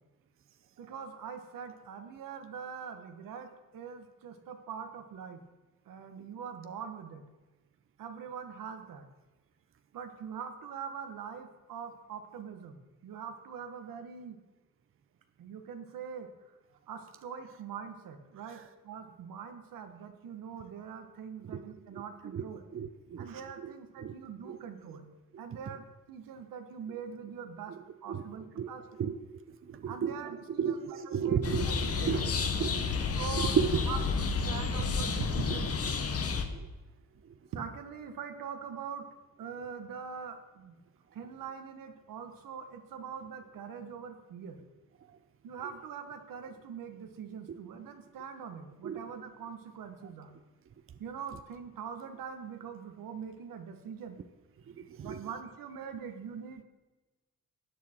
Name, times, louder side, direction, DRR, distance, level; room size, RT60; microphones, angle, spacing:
voice 1, 0.8-5.4 5.9-7.2 8.0-9.1 9.9-14.4 15.4-16.3 16.9-22.6 23.2-25.1 25.4-27.8 28.0-29.1 29.8-31.4 31.6-31.7 32.0-32.2 33.2-36.0 37.5-39.1 39.4-40.7 41.1-44.6 45.4-50.3 51.0-54.2 55.0-56.6, right 6 dB, 90° right, 6 dB, 1.4 m, -43 dB
voice 2, 22.7-23.3 23.6-23.7 24.0-24.1 24.5-24.6 28.1-28.2 28.6-28.7 29.0-29.1 29.7-30.2 30.5-32.2 32.6-32.9 33.3-33.8 36.5-36.7 47.5-47.6 48.8-49.0 54.7-55.2, right 7 dB, 40° right, 10 dB, 0.6 m, -33 dB
sound 1, 31.4-36.4, left 5 dB, 45° left, 1.2 m, -31 dB
13.0 x 8.6 x 4.4 m, 1.2 s
cardioid pair, 105°, 32 cm